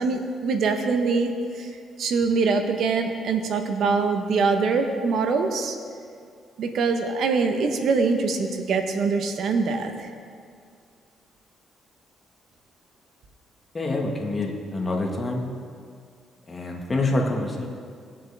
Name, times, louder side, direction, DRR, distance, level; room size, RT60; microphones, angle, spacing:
voice 1, 0.0-1.3 1.6-1.7 2.0-5.8 6.6-10.1, right 4 dB, 70° right, 6 dB, 1.1 m, -23 dB
voice 2, 13.8-15.4 16.5-17.7, left 2 dB, 30° left, 0 dB, 1.7 m, -26 dB
17.5 x 7.4 x 3.6 m, 2.2 s
cardioid pair, 90°, 0 cm